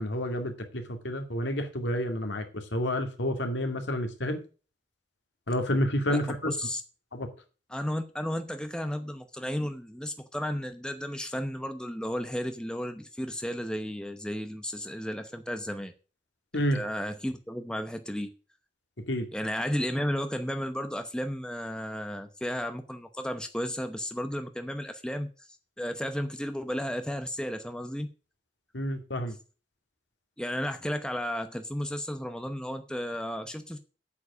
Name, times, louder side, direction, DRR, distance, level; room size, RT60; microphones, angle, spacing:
voice 1, 0.0-4.4 5.5-6.5 7.1-7.3 16.5-16.8 19.1-19.3 28.7-29.4, equal, 75° left, 5 dB, 2.3 m, -29 dB
voice 2, 6.1-6.8 7.7-15.9 16.7-18.3 19.3-25.3 25.8-28.1 30.4-33.8, equal, 5° left, 7 dB, 0.8 m, -33 dB
8.4 x 7.5 x 8.2 m, 0.36 s
head